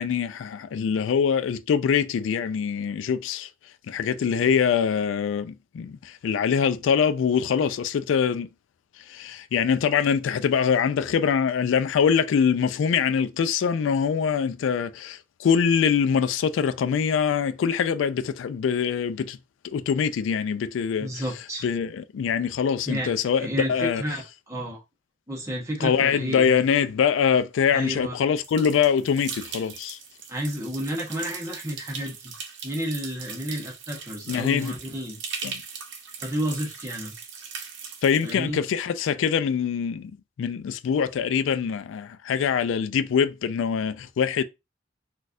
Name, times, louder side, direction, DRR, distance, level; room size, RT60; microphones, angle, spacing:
voice 1, 0.0-3.5 3.9-8.5 9.1-19.4 19.6-21.1 21.6-24.0 25.8-30.0 34.3-34.7 35.4-35.6 38.0-40.1 40.4-44.4, left 7 dB, 85° left, 0.3 m, -24 dB
voice 2, 21.0-21.7 22.8-23.1 23.4-24.8 25.3-26.6 27.7-28.2 30.3-32.3 32.6-35.2 36.2-37.1 38.2-38.6, equal, 15° right, 0.9 m, -31 dB
sound 1, 28.4-38.4, right 6 dB, 70° right, 0.7 m, -39 dB
4.1 x 2.3 x 2.5 m
head